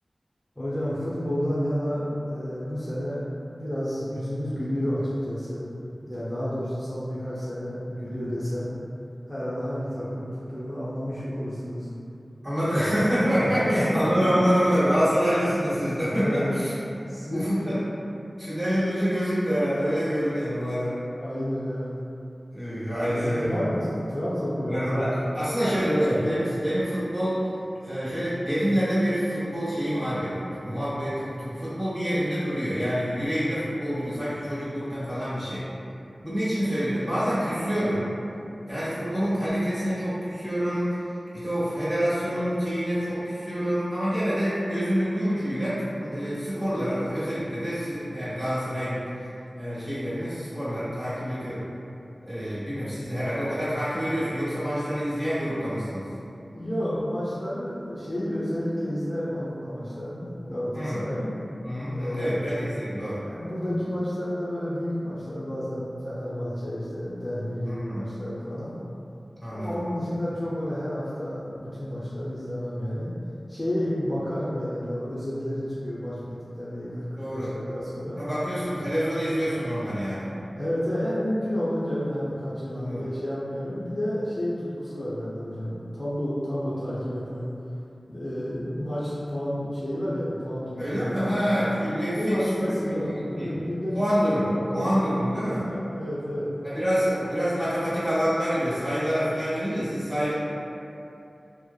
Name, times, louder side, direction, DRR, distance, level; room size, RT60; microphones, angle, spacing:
voice 1, 0.6-5.7 6.0-8.7 9.3-11.9 13.4-14.4 16.1-16.6 17.1-17.7 21.2-22.0 22.8-25.2 56.5-61.3 61.9-62.5 63.2-68.7 69.5-73.1 73.5-78.2 80.5-87.5 88.1-91.5 92.1-94.0 94.4-95.0 95.7-96.5 100.1-100.3, equal, 15° left, -11 dB, 0.6 m, -30 dB
voice 2, 12.4-16.7 17.3-17.9 18.4-21.0 22.5-23.8 24.6-27.4 27.8-35.6 36.2-38.1 38.7-49.0 49.6-51.6 52.2-56.1 60.7-61.0 61.6-63.2 67.7-68.1 69.4-69.8 77.2-77.5 78.1-80.3 82.7-83.0 90.8-93.0 93.3-93.6 93.9-95.6 96.6-100.3, equal, 25° right, -13 dB, 1.5 m, -26 dB
3.2 x 2.0 x 2.2 m, 2.7 s
cardioid pair, 40°, 0 cm